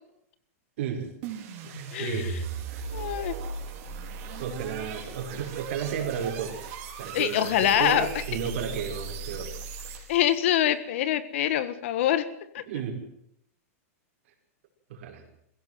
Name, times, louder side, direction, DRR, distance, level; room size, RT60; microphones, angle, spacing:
voice 1, 0.8-1.1 1.6-2.4 2.7-2.9 4.4-6.6 7.0-9.5 9.9-10.0 12.7-13.0 14.9-15.2, right 7 dB, 55° right, 2 dB, 5.5 m, -33 dB
sound 1, 1.2-10.3, right 5 dB, 40° right, 4.2 m, -37 dB
voice 2, 1.9-2.3 2.9-3.3 7.1-8.1 10.1-12.3 12.5-12.6, left 11 dB, 55° left, 14 dB, 1.6 m, -25 dB
22.0 x 16.5 x 7.8 m, 0.72 s
supercardioid pair, 170°, 8 cm